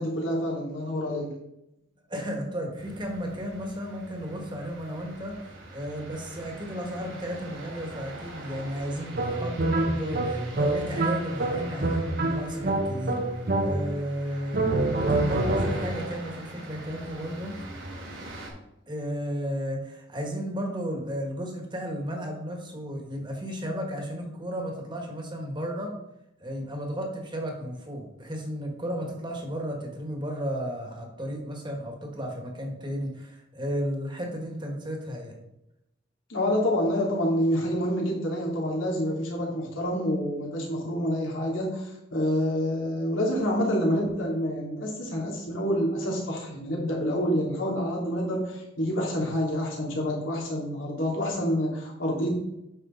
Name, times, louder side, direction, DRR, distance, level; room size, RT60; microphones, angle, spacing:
voice 1, 0.0-1.3 36.3-52.4, equal, 80° left, -3 dB, 2.9 m, -27 dB
voice 2, 2.1-5.4 5.7-13.2 13.6-17.5 18.9-25.9 26.4-35.3, equal, 25° right, 2 dB, 1.6 m, -33 dB
sound 1, 2.8-18.5, right 2 dB, 90° right, 3.2 m, -43 dB
sound 2, 9.1-14.1 14.5-16.1, right 2 dB, 50° right, 0.9 m, -27 dB
9.1 x 6.4 x 3.9 m, 0.87 s
head